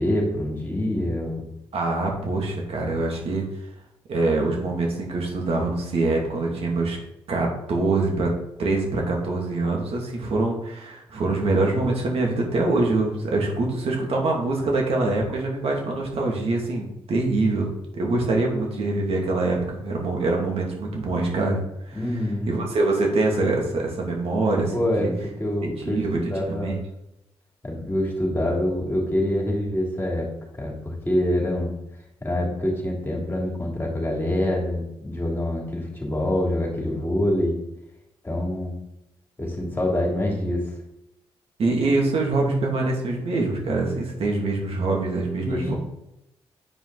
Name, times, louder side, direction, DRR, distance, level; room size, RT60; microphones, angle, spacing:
voice 1, 0.0-1.4 21.9-22.5 24.7-25.1 25.4-26.7 27.6-30.3 30.5-31.7 32.2-37.6 38.2-38.7 39.4-40.7 45.4-45.8, left 1 dB, 20° left, -2 dB, 3.1 m, -25 dB
voice 2, 1.7-3.4 4.1-7.0 7.3-8.3 8.6-21.6 21.9-22.0 22.5-25.1 25.8-26.2 26.5-26.7 41.6-45.8, right 2 dB, 70° right, 0 dB, 2.3 m, -24 dB
8.7 x 5.0 x 4.0 m, 0.83 s
cardioid pair, 65°, 11 cm